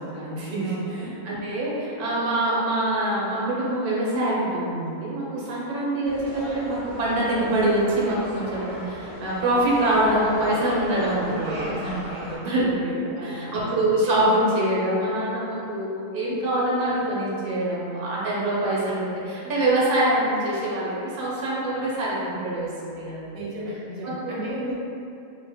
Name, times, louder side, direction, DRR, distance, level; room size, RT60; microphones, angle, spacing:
voice 1, 0.0-23.5 24.0-24.7, right 1 dB, 55° right, -6 dB, 0.7 m, -25 dB
voice 2, 0.6-1.1 11.1-12.3 13.2-13.6 23.3-24.7, equal, 85° right, -6 dB, 1.1 m, -35 dB
sound 1, 6.0-12.4, equal, 5° right, 0.9 m, -37 dB
2.4 x 2.1 x 3.4 m, 2.7 s
omnidirectional pair, 1.4 m